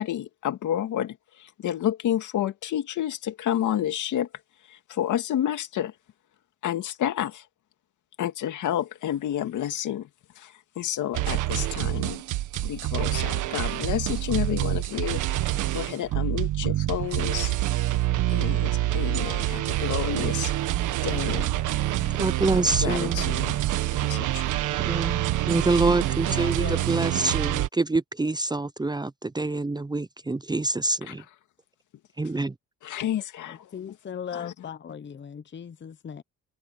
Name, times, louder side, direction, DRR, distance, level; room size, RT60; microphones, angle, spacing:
voice 1, 0.0-4.3 4.7-5.9 6.6-7.4 8.2-10.1 10.4-12.2 12.6-17.5 18.3-20.5 21.0-21.5 22.8-23.6 23.9-24.5 31.1-31.2 32.8-33.6 34.3-34.5, left 11 dB, 75° left, 2.4 m, -30 dB
sound 1, 11.1-27.7, right 15 dB, 90° right, 1.6 m, -26 dB
voice 2, 22.2-23.3 24.8-31.2 32.2-32.5, right 2 dB, 15° right, 0.7 m, -26 dB
voice 3, 26.3-27.1 33.5-36.2, left 7 dB, 40° left, 1.0 m, -38 dB
cardioid pair, 90°, 30 cm